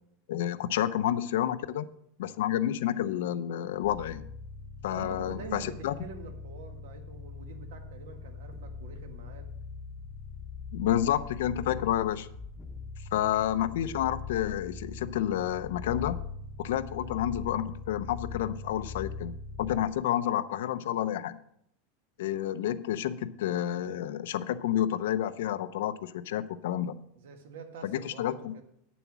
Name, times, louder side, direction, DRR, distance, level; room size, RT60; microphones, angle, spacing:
voice 1, 0.3-1.8 2.2-4.3 4.8-5.9 10.7-12.3 13.1-16.2 16.6-21.4 22.2-27.0 27.8-28.5, left 11 dB, 70° left, 13 dB, 0.6 m, -30 dB
sound 1, 3.8-20.0, left 5 dB, 10° left, 0.9 m, -42 dB
voice 2, 4.9-9.5 27.2-28.6, right 4 dB, 80° right, 6 dB, 1.7 m, -45 dB
9.3 x 7.1 x 6.0 m, 0.72 s
supercardioid pair, 180°, 0 cm